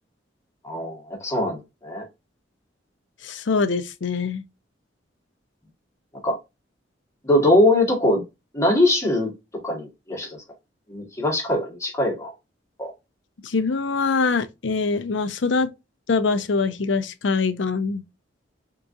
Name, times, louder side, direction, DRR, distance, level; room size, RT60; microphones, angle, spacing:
voice 1, 0.6-2.0 6.2-6.4 7.2-8.2 8.5-9.3 9.6-10.4 10.9-12.3 12.8-12.9, left 1 dB, 15° left, 1.7 m, -21 dB
voice 2, 3.2-4.4 13.4-15.7 16.1-18.0, left 4 dB, 85° left, 0.6 m, -23 dB
4.7 x 3.7 x 2.6 m
head